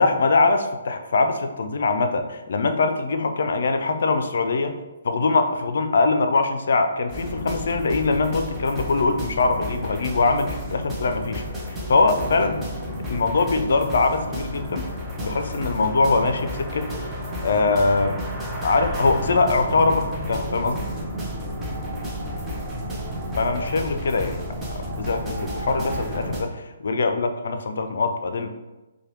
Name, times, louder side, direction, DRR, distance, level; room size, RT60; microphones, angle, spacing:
voice 1, 0.0-4.8 5.0-11.4 11.9-12.6 13.1-14.9 15.2-17.1 17.4-18.2 18.6-20.9 23.4-24.4 24.9-28.5, left 3 dB, 65° left, 7 dB, 0.4 m, -22 dB
sound 1, 7.1-26.4, equal, 15° right, 0.7 m, -31 dB
4.6 x 2.2 x 2.9 m, 1.1 s
hypercardioid pair, 140°, 0 cm